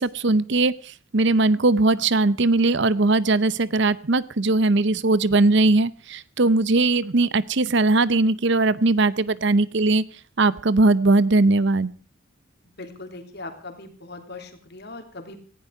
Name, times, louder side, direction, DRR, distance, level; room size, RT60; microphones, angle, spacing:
voice 1, 0.0-10.0 10.4-11.9, right 2 dB, 55° right, 18 dB, 0.7 m, -20 dB
voice 2, 12.8-15.4, left 2 dB, 50° left, 5 dB, 3.3 m, -39 dB
18.0 x 15.0 x 4.8 m, 0.38 s
head